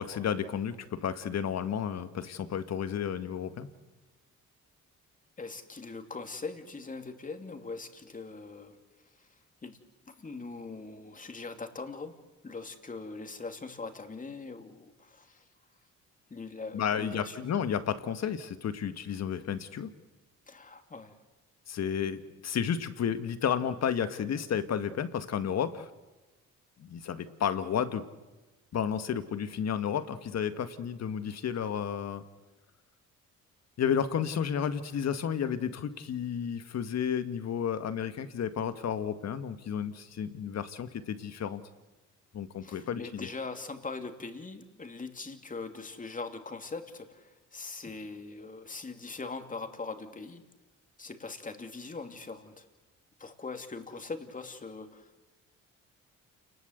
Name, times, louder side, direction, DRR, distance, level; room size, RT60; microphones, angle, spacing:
voice 1, 0.0-3.7 16.7-19.9 21.7-25.9 26.8-28.0 28.7-32.2 33.8-41.6 42.3-43.3, left 8 dB, 60° left, 10 dB, 1.8 m, -32 dB
voice 2, 5.4-8.8 9.1-9.3 9.6-9.8 10.1-12.2 12.4-15.4 16.3-17.4 20.5-21.2 42.6-50.4 51.0-52.7 53.2-55.2, left 4 dB, 25° left, 6 dB, 2.8 m, -41 dB
29.0 x 20.0 x 8.1 m, 1.2 s
cardioid pair, 90°, 30 cm